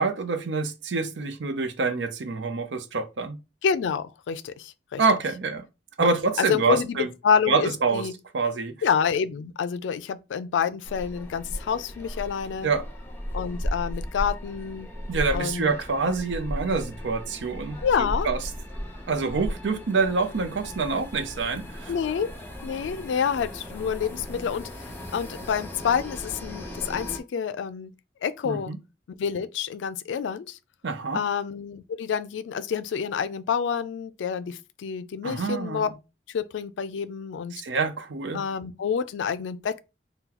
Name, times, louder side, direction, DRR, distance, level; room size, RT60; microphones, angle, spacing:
voice 1, 0.0-3.4 5.0-5.6 6.0-7.1 7.5-8.0 8.3-8.7 12.6-12.8 15.1-18.4 19.1-21.9 28.4-28.8 30.8-31.2 35.2-35.9 37.5-38.4, right 4 dB, 85° right, 0.6 m, -26 dB
voice 2, 3.6-5.0 6.0-6.1 6.4-7.0 7.2-8.1 8.8-12.7 13.3-14.9 15.3-15.7 17.8-18.3 21.9-22.3 22.6-27.9 28.2-28.7 29.2-30.6 31.1-35.9 36.3-37.6 38.3-39.8, left 7 dB, 90° left, 0.3 m, -28 dB
sound 1, 10.8-27.2, equal, 10° left, 0.5 m, -36 dB
2.9 x 2.2 x 3.7 m
head